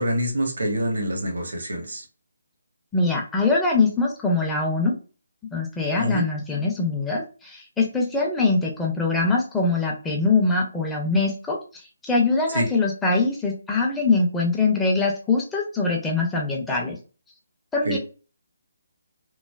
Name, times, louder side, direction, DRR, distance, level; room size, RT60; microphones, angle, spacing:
voice 1, 0.0-2.0 6.0-6.3 12.5-12.7 17.8-18.0, equal, 65° right, 3 dB, 0.9 m, -26 dB
voice 2, 2.9-4.9 5.5-17.0 17.7-18.0, left 3 dB, 5° left, -2 dB, 0.6 m, -23 dB
3.1 x 2.1 x 2.3 m, 0.35 s
figure-of-eight pair, 145°, 0 cm